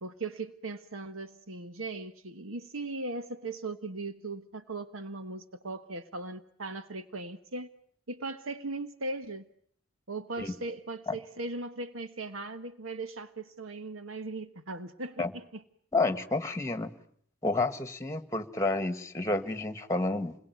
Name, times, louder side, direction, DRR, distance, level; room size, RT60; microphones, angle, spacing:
voice 1, 0.0-7.7 8.1-9.4 10.1-15.6, right 2 dB, 75° right, 1.4 m, -38 dB
voice 2, 15.9-16.9 17.4-20.4, left 2 dB, 15° left, 1.9 m, -30 dB
28.5 x 22.0 x 9.5 m
head